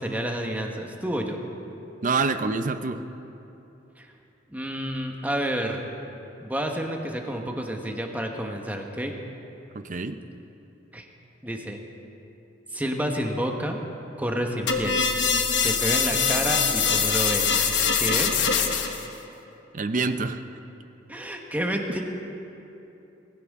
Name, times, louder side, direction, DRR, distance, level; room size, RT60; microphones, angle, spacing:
voice 1, 0.0-1.4 4.0-4.1 4.5-5.9 6.4-9.1 10.9-11.1 11.4-11.8 12.7-13.8 14.2-15.0 15.6-17.5 18.0-18.4 21.1-22.0, equal, 10° right, 2 dB, 1.2 m, -29 dB
voice 2, 2.0-3.0 9.7-10.2 19.7-20.4, right 4 dB, 45° right, 10 dB, 0.6 m, -26 dB
sound 1, 14.7-19.1, left 6 dB, 70° left, 1.2 m, -23 dB
20.5 x 16.5 x 3.7 m, 2.9 s
head